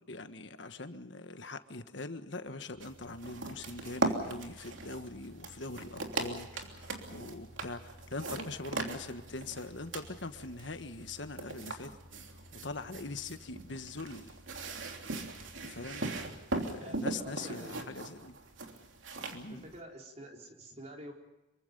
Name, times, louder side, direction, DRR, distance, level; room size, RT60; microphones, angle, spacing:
voice 1, 0.0-12.0 12.3-14.3 15.2-15.3 15.6-16.0 16.7-18.4 19.3-19.7, left 3 dB, 70° left, 9 dB, 1.5 m, -42 dB
sound 1, 2.7-16.3, left 1 dB, 50° left, 3.1 m, -56 dB
sound 2, 2.8-19.8, right 2 dB, 85° right, 3.1 m, -39 dB
voice 2, 16.8-17.8 19.5-21.1, right 1 dB, 35° right, 1 dB, 4.3 m, -48 dB
26.5 x 24.0 x 5.5 m, 1.0 s
head